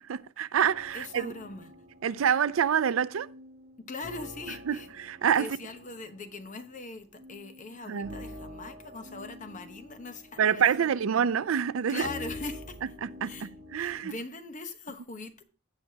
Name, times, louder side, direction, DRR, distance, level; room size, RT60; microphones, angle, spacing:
voice 1, 0.0-1.3 2.0-3.3 4.7-5.6 7.9-8.2 10.4-12.1 12.8-14.1, right 8 dB, 85° right, 0.4 m, -27 dB
sound 1, 0.6-14.0, left 1 dB, 50° right, 2.7 m, -47 dB
voice 2, 0.9-1.7 3.9-4.9 5.4-10.9 11.9-12.8 13.2-13.5 13.8-15.4, left 3 dB, 40° left, 1.0 m, -41 dB
16.5 x 5.5 x 2.8 m
head